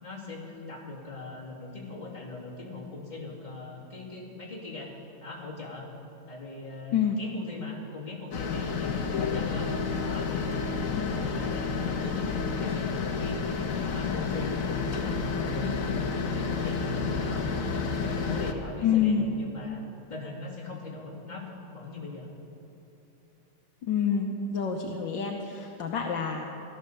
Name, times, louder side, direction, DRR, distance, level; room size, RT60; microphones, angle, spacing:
voice 1, 0.0-4.9 5.2-5.9 6.3-9.7 10.0-13.4 13.8-17.5 17.9-22.3, left 3 dB, 20° left, -5 dB, 2.8 m, -40 dB
sound 1, 8.3-18.5, left 5 dB, 50° left, 1.3 m, -30 dB
voice 2, 18.8-19.2 23.8-26.5, left 7 dB, 70° left, 2 dB, 1.6 m, -27 dB
16.0 x 12.5 x 6.8 m, 2.8 s
omnidirectional pair, 2.2 m